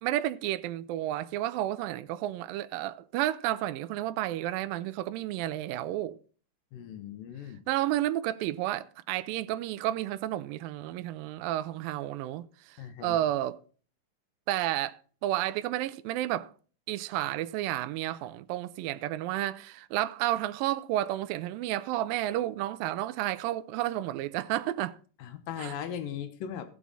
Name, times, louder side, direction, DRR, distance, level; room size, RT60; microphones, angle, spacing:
voice 1, 0.0-6.2 7.7-13.6 14.5-16.5 16.9-25.0 25.6-25.7, right 14 dB, 85° right, 2.3 m, -31 dB
voice 2, 6.7-7.6 12.8-13.2 25.2-26.7, left 9 dB, 80° left, 2.7 m, -38 dB
17.0 x 6.2 x 4.0 m
omnidirectional pair, 4.0 m